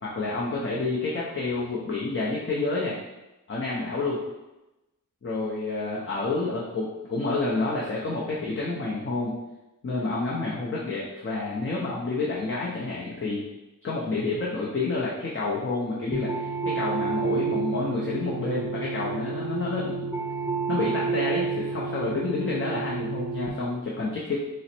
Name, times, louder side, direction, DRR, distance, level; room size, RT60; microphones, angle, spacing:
voice 1, 0.0-2.9 3.5-4.2 5.2-9.3 9.8-13.5 13.8-20.1 20.7-24.4, left 3 dB, 40° left, -5 dB, 0.7 m, -29 dB
sound 1, 16.1-23.5, right 5 dB, 5° right, 0.4 m, -30 dB
3.8 x 2.1 x 4.3 m, 1.0 s
wide cardioid pair, 80°, 33 cm